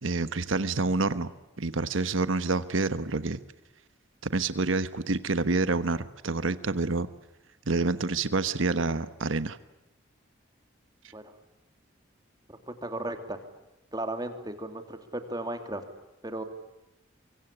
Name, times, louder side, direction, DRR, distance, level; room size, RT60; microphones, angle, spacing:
voice 1, 0.0-1.3 1.6-3.4 4.2-7.1 7.7-9.6, right 3 dB, 85° right, 13 dB, 1.2 m, -27 dB
voice 2, 12.5-13.4 13.9-15.8 16.2-16.4, right 1 dB, 20° right, 7 dB, 2.6 m, -35 dB
24.5 x 24.5 x 9.9 m, 0.95 s
head